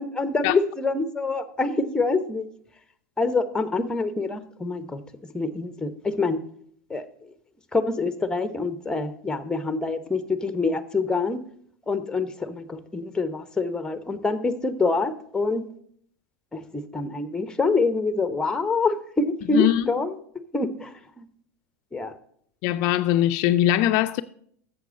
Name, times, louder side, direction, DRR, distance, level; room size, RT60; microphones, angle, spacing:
voice 1, 0.0-2.5 3.2-5.0 5.3-6.4 6.9-7.3 7.7-11.4 11.9-15.6 16.5-20.2 20.5-21.3 21.9-22.1, left 3 dB, 10° left, 0.9 m, -26 dB
voice 2, 19.5-19.8 22.6-24.2, left 13 dB, 55° left, 0.4 m, -21 dB
8.1 x 7.0 x 6.4 m
hypercardioid pair, 100°, 8 cm